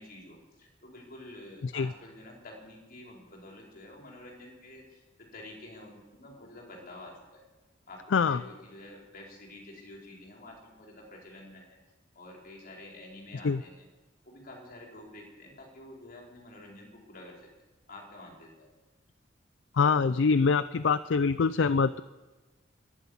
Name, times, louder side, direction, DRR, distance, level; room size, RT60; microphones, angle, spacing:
voice 1, 0.0-7.4 7.9-11.8 12.1-13.9 14.2-17.5 17.9-18.7, left 1 dB, 50° left, -2 dB, 4.7 m, -49 dB
voice 2, 19.8-22.0, left 5 dB, 70° left, 14 dB, 0.4 m, -24 dB
12.0 x 11.0 x 9.7 m, 1.2 s
head